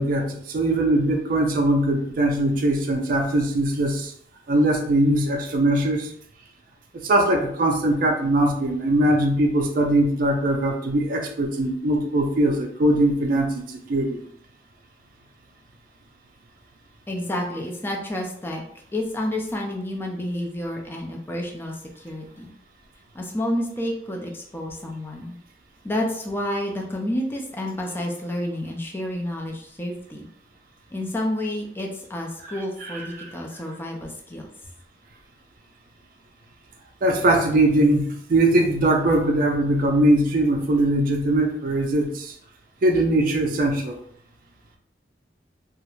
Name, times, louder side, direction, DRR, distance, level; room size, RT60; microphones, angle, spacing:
voice 1, 0.0-4.1 4.5-6.1 6.9-14.2 32.8-32.9 33.2-33.3 37.0-42.3 42.8-44.0, right 1 dB, 50° right, 2 dB, 0.4 m, -21 dB
voice 2, 17.1-18.6 18.9-22.5 23.1-25.4 25.8-30.3 30.9-34.5, left 1 dB, 15° left, 0 dB, 0.4 m, -30 dB
2.3 x 2.1 x 3.0 m, 0.66 s
head